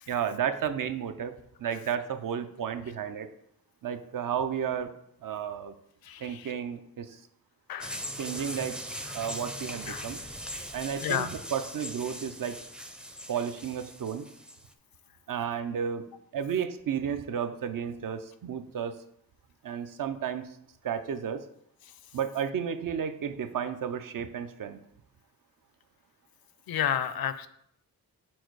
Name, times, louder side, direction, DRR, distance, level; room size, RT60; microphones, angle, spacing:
voice 1, 0.1-1.3 1.6-3.3 3.8-4.9 5.2-5.7 6.2-7.2 8.2-8.8 9.1-10.2 10.7-12.6 13.3-14.3 15.3-16.0 16.3-19.0 19.6-20.5 20.8-21.4 22.1-24.8, right 8 dB, 60° right, 10 dB, 0.6 m, -32 dB
voice 2, 6.1-6.5 7.7-8.0 9.9-10.0 11.0-11.3 26.7-27.5, left 9 dB, 75° left, 12 dB, 0.5 m, -31 dB
sound 1, 7.8-14.7, equal, 5° right, 0.4 m, -40 dB
4.7 x 4.5 x 4.6 m, 0.75 s
wide cardioid pair, 90°, 36 cm